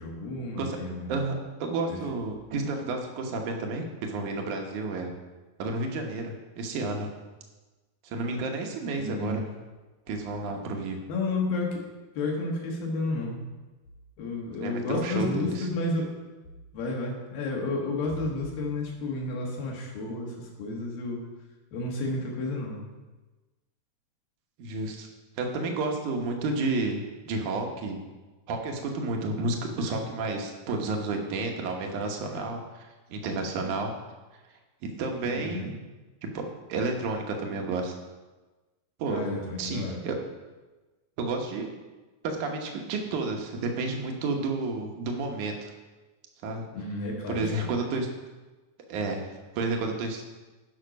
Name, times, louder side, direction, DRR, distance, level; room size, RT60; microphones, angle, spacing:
voice 1, 0.0-1.2 1.9-2.0 9.0-9.4 11.1-11.8 12.1-13.5 14.2-16.1 16.7-21.2 21.7-22.8 35.2-35.7 39.1-40.0 46.7-47.5, left 2 dB, 65° left, -1 dB, 3.3 m, -31 dB
voice 2, 1.1-5.1 5.6-7.1 8.0-9.4 10.1-11.0 14.6-15.7 24.6-25.1 25.4-28.0 28.5-33.9 34.8-35.7 36.3-36.4 36.7-37.9 39.0-39.2 39.6-40.2 41.2-41.7 42.2-45.7 46.4-46.6 47.3-48.1 48.9-50.2, right 3 dB, 65° right, 2 dB, 2.0 m, -31 dB
12.0 x 5.8 x 5.2 m, 1.2 s
omnidirectional pair, 4.8 m